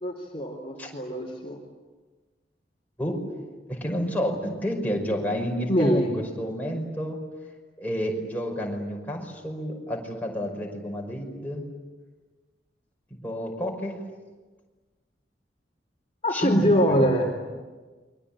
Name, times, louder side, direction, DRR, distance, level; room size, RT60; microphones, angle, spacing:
voice 1, 0.0-1.6 5.7-6.1 16.2-17.3, equal, 30° left, 1 dB, 3.2 m, -23 dB
voice 2, 3.7-7.2 7.8-11.6 13.1-14.0 16.3-17.0, equal, 10° left, 0 dB, 5.5 m, -30 dB
29.0 x 23.5 x 8.8 m, 1.3 s
head